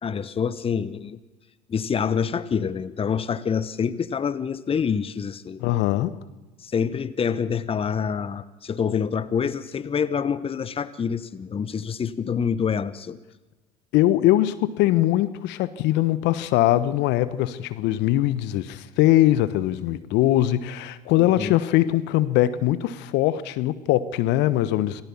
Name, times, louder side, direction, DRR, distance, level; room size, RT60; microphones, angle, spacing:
voice 1, 0.0-1.2 1.7-5.6 6.6-13.2 21.2-21.6, left 7 dB, 25° left, 1.1 m, -26 dB
voice 2, 5.6-6.2 13.9-25.0, left 14 dB, 60° left, 1.2 m, -21 dB
27.0 x 18.5 x 7.3 m
hypercardioid pair, 65°, 20 cm